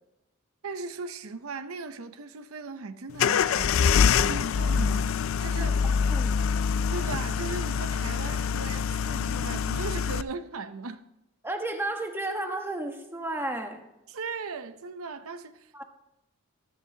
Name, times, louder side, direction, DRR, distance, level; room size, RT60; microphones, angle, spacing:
voice 1, 0.6-3.8 4.2-5.8 6.9-11.0 14.1-15.8, right 4 dB, 90° right, 0.7 m, -38 dB
sound 1, 3.2-10.2, left 6 dB, 65° left, 0.4 m, -25 dB
voice 2, 11.4-13.9 15.7-15.8, right 2 dB, 10° right, 1.2 m, -32 dB
14.0 x 13.0 x 2.8 m
head